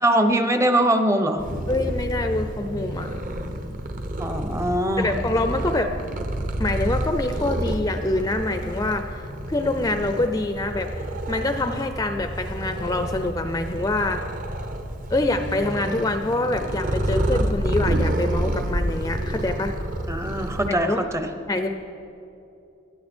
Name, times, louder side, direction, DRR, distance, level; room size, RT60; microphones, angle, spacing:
voice 1, 0.0-1.4 4.2-5.1 20.1-21.3, right 1 dB, 15° right, 8 dB, 0.7 m, -22 dB
Purr, 1.4-20.7, right 1 dB, 40° right, 1.0 m, -29 dB
voice 2, 1.7-3.2 5.0-5.9 6.6-10.9 11.3-14.2 15.1-19.8 20.7-21.0 21.5-21.7, left 2 dB, 15° left, 7 dB, 0.5 m, -25 dB
20.5 x 12.5 x 4.4 m, 2.7 s
head